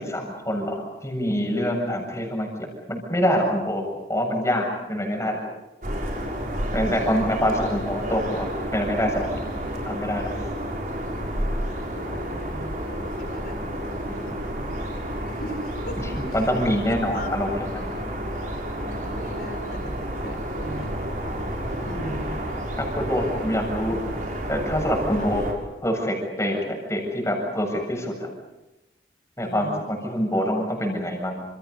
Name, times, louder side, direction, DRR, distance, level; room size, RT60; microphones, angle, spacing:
voice 1, 0.0-3.8 4.1-5.4 6.7-8.5 8.7-9.4 9.8-10.3 16.0-18.0 22.8-24.0 24.5-25.4 25.8-28.3 29.4-31.4, equal, 15° left, 2 dB, 7.5 m, -25 dB
sound 1, 5.8-25.5, equal, 45° right, 6.3 m, -30 dB
voice 2, 6.8-7.5 11.9-14.9 15.2-16.4 16.8-17.3 18.8-21.5 21.8-22.4 25.2-25.3 29.4-29.8, equal, 55° left, 7 dB, 5.0 m, -39 dB
30.0 x 28.5 x 5.5 m, 1.0 s
head